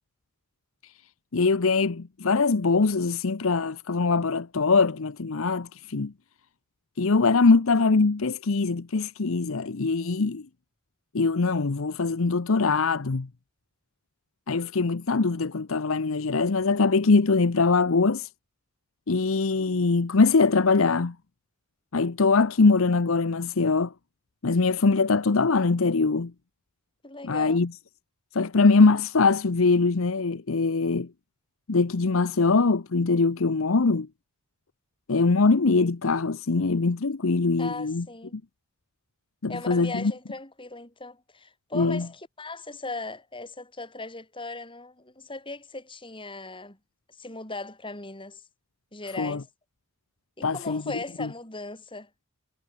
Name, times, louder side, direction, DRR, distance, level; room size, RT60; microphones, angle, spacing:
voice 1, 1.3-6.1 7.0-10.5 11.1-13.3 14.5-18.3 19.1-21.2 21.9-23.9 24.4-26.3 27.2-27.7 28.3-31.1 31.7-34.1 35.1-38.1 38.3-38.4 39.4-40.1 41.7-42.1 49.2-49.4 50.4-50.8 51.2-51.3, left 4 dB, 70° left, 0.8 m, -22 dB
voice 2, 27.0-27.6 37.6-38.4 39.5-46.8 47.2-48.4 48.9-49.5 50.4-52.1, left 3 dB, 25° left, 6.9 m, -38 dB
head